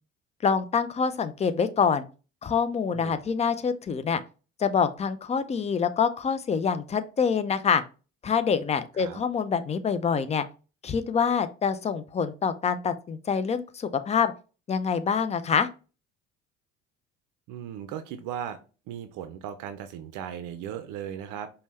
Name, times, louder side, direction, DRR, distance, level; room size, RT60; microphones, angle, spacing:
voice 1, 0.4-2.0 2.4-4.2 4.6-7.8 8.2-10.4 10.8-14.3 14.7-15.7, left 6 dB, 20° left, 12 dB, 0.4 m, -26 dB
voice 2, 17.5-18.6 18.9-21.5, right 9 dB, 55° right, 10 dB, 0.6 m, -37 dB
5.2 x 2.2 x 3.1 m, 0.34 s
hypercardioid pair, 60°, 37 cm